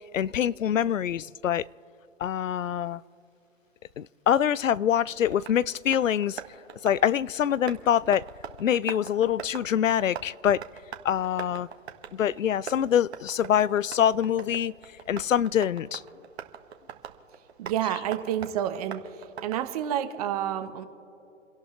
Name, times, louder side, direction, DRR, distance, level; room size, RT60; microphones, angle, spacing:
voice 1, 0.1-1.6 2.2-3.0 4.0-6.4 6.8-8.2 8.6-10.6 11.0-11.7 12.1-14.7 15.1-16.0, left 9 dB, 90° left, 0.5 m, -25 dB
Tap, 4.5-20.0, right 8 dB, 55° right, 1.6 m, -44 dB
voice 2, 17.6-19.0 19.4-20.9, right 10 dB, 30° right, 1.2 m, -29 dB
30.0 x 11.5 x 3.2 m
hypercardioid pair, 145°, 38 cm